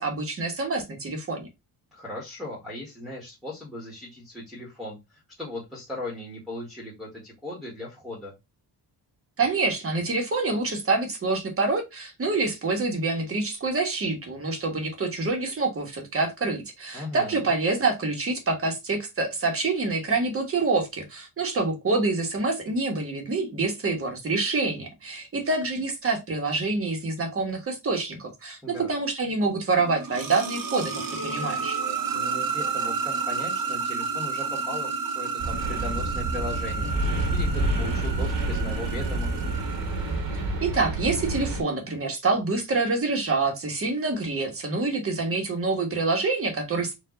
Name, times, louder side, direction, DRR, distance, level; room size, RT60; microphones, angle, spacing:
voice 1, 0.0-1.5 9.4-30.9 31.2-31.8 40.6-46.9, right 3 dB, 30° right, 1.3 m, -26 dB
voice 2, 1.9-8.3 16.9-17.5 28.6-28.9 32.1-39.3, left 1 dB, ahead, 1.6 m, -38 dB
sound 1, 29.7-40.5, right 5 dB, 50° right, 1.0 m, -31 dB
sound 2, 35.4-41.6, right 2 dB, 90° right, 2.0 m, -28 dB
4.6 x 2.7 x 3.8 m
cardioid pair, 150°, 42 cm